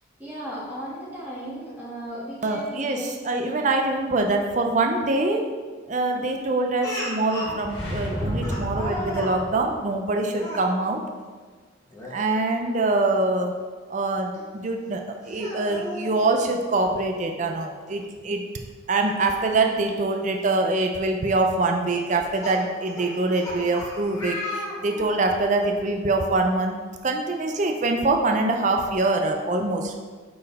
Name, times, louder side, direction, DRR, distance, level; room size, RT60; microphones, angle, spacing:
voice 1, 0.2-3.7 6.0-6.3, equal, 10° right, -7 dB, 1.2 m, -36 dB
voice 2, 2.4-3.0 3.3-5.4 5.9-11.0 12.1-13.5 13.9-18.4 18.9-24.4 24.8-26.8 27.0-30.0, right 2 dB, 40° right, 3 dB, 0.4 m, -24 dB
Speech, 6.8-7.6 8.4-9.4 10.3-10.7 11.9-12.2 12.6-12.7 14.3-14.4 15.2-16.1 17.5-17.6 17.9-18.0 19.9-20.0 20.6-20.8 21.9-25.3, left 1 dB, 15° left, 1.1 m, -34 dB
sound 1, 7.6-9.8, equal, 65° left, 1.6 m, -31 dB
5.3 x 4.4 x 4.0 m, 1.5 s
head